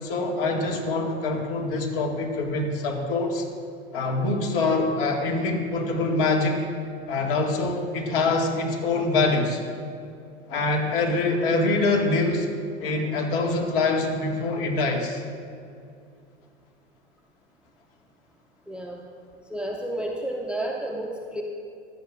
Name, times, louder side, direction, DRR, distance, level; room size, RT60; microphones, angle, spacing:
voice 1, 0.0-3.5 3.9-6.6 7.1-9.6 10.5-12.5 12.8-15.2, left 3 dB, 50° left, 2 dB, 1.8 m, -24 dB
voice 2, 18.7-19.0 19.5-21.4, right 1 dB, 5° right, 1 dB, 0.6 m, -31 dB
16.0 x 11.5 x 2.4 m, 2.4 s
figure-of-eight pair, 90°, 35 cm